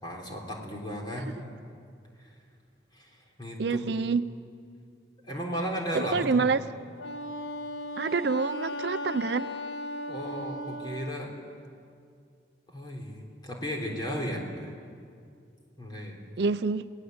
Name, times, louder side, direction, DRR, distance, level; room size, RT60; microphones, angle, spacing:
voice 1, 0.0-1.3 2.2-2.3 2.9-4.0 5.2-6.5 10.1-11.4 12.7-14.7 15.8-16.2, equal, 25° left, -1 dB, 3.7 m, -35 dB
voice 2, 3.6-4.2 5.9-6.6 8.0-9.5 16.4-16.9, right 4 dB, 60° right, 13 dB, 0.5 m, -27 dB
Wind instrument woodwind instrument, 7.0-11.2, left 1 dB, 75° left, 1.2 m, -37 dB
30.0 x 18.5 x 8.0 m, 2.3 s
head